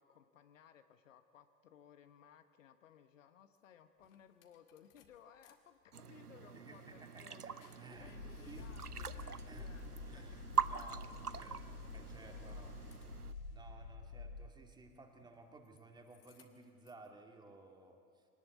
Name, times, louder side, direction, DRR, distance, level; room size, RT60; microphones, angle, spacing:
voice 1, 0.0-11.3 11.9-12.1 12.4-12.7, left 8 dB, 55° left, 10 dB, 1.2 m, -62 dB
sound 1, 3.6-3.7 4.0-5.5 5.9-13.6 15.1-15.8 16.1-17.1, left 8 dB, 35° left, 2.0 m, -59 dB
sound 2, 5.9-13.3, right 7 dB, 85° right, 0.8 m, -43 dB
voice 2, 6.5-7.5 7.8-8.1 8.5-8.7 9.4-11.6 11.9-12.8 13.5-18.3, right 2 dB, 10° right, 3 dB, 2.3 m, -57 dB
sound 3, 7.9-14.5, left 3 dB, 85° left, 1.4 m, -49 dB
24.5 x 19.0 x 8.3 m, 2.3 s
figure-of-eight pair, 100°, 44 cm